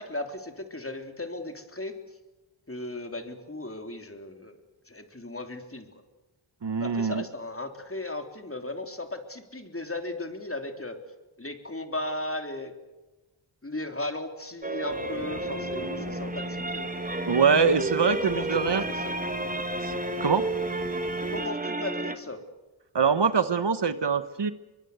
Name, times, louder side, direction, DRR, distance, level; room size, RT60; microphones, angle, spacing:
voice 1, 0.0-2.2 2.7-4.6 4.9-5.9 6.8-11.0 11.4-12.7 13.6-17.0 18.1-19.2 21.3-22.4, left 2 dB, 30° left, 6 dB, 3.5 m, -36 dB
voice 2, 6.6-7.2 17.3-18.8 19.8-19.9 20.2-20.5 22.9-24.5, right 6 dB, 60° right, 13 dB, 1.3 m, -24 dB
sound 1, 14.6-22.2, right 2 dB, 15° right, 1.9 m, -31 dB
Fire, 14.9-21.5, left 3 dB, 55° left, 3.5 m, -44 dB
23.0 x 23.0 x 8.1 m, 1.1 s
wide cardioid pair, 55°, 48 cm